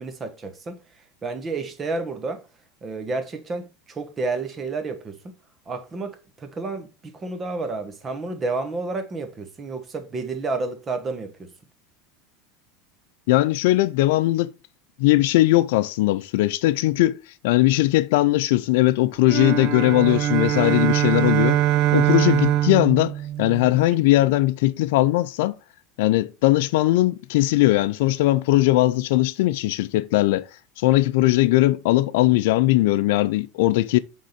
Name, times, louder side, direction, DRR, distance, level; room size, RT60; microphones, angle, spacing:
voice 1, 0.0-2.4 2.8-5.3 5.7-11.5, right 3 dB, 25° right, 1.2 m, -30 dB
voice 2, 13.3-14.5 15.0-17.2 17.4-21.6 21.9-25.5 26.0-30.4 30.8-34.0, left 17 dB, 75° left, 0.4 m, -19 dB
sound 1, 19.2-23.9, right 13 dB, 50° right, 0.6 m, -22 dB
6.7 x 3.7 x 4.6 m
supercardioid pair, 130°, 0 cm